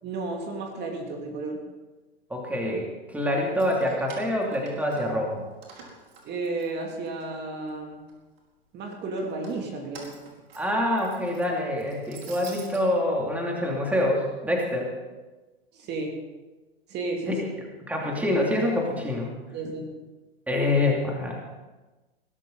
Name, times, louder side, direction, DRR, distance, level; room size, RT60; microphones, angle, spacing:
voice 1, 0.0-1.6 6.2-8.0 8.7-10.2 15.7-16.2 16.9-17.4 19.5-19.9, right 3 dB, 30° right, 1 dB, 2.9 m, -33 dB
voice 2, 2.3-5.4 10.5-14.9 17.3-17.5 17.8-19.3 20.5-21.5, left 1 dB, 5° right, -1 dB, 2.8 m, -26 dB
Keys jangling, 3.4-5.3 5.6-7.2 7.7-8.4 9.2-12.8, right 4 dB, 70° right, 4.5 m, -47 dB
20.5 x 13.0 x 4.0 m, 1.2 s
hypercardioid pair, 110°, 32 cm